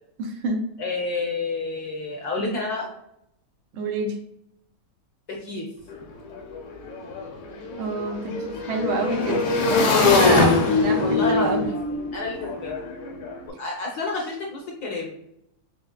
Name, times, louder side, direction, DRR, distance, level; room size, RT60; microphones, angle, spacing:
voice 1, 0.2-0.6 3.7-4.2 7.8-11.7, right 3 dB, 80° right, 3 dB, 1.5 m, -28 dB
voice 2, 0.8-2.9 5.3-5.6 9.9-10.4 11.0-11.6 11.9-12.8 13.6-15.1, left 3 dB, 65° left, -1 dB, 1.0 m, -29 dB
Motorcycle / Engine, 5.9-6.0 6.2-13.4, left 3 dB, 85° left, 1.9 m, -23 dB
4.9 x 3.2 x 2.2 m, 0.78 s
omnidirectional pair, 2.3 m